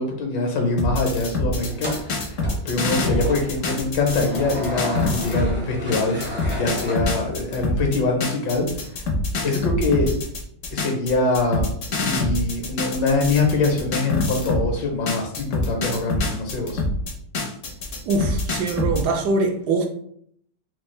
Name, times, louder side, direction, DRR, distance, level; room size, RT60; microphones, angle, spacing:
voice 1, 0.0-6.2 6.5-9.0 9.4-10.1 10.7-11.7 12.0-16.8, left 3 dB, 75° left, 1.5 m, -24 dB
sound 1, 0.8-5.5 5.9-14.7 15.1-19.0, left 2 dB, 55° left, 0.9 m, -25 dB
sound 2, 1.7-7.7, left 1 dB, 15° right, 0.4 m, -34 dB
voice 2, 18.1-19.8, right 3 dB, 70° right, 1.0 m, -23 dB
4.3 x 2.4 x 3.2 m
omnidirectional pair, 2.0 m